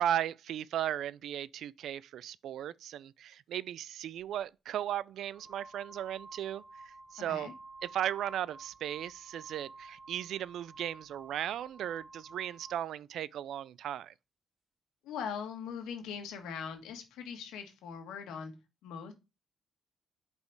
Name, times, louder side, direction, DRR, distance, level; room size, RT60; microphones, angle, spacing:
voice 1, 0.0-7.5 7.9-14.1, right 11 dB, 75° right, 0.3 m, -36 dB
sound 1, 4.2-4.4 5.1-12.9, right 3 dB, 20° right, 0.6 m, -52 dB
voice 2, 15.0-18.5 18.8-19.1, left 7 dB, 85° left, 1.4 m, -41 dB
5.3 x 4.2 x 4.5 m
cardioid pair, 90°, 0 cm